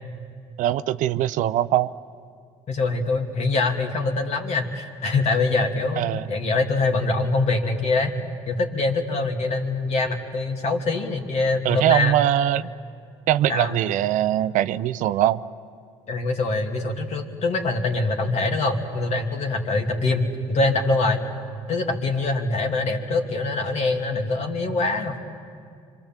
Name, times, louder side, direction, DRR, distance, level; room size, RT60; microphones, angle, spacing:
voice 1, 0.6-1.9 6.0-6.2 11.6-12.7 13.3-15.4, right 12 dB, 70° right, 14 dB, 0.6 m, -21 dB
voice 2, 2.7-8.1 8.5-12.2 13.5-13.8 16.1-21.3 21.7-25.2, left 3 dB, 55° left, 3 dB, 2.7 m, -24 dB
26.0 x 24.0 x 7.5 m, 2.3 s
supercardioid pair, 65°, 14 cm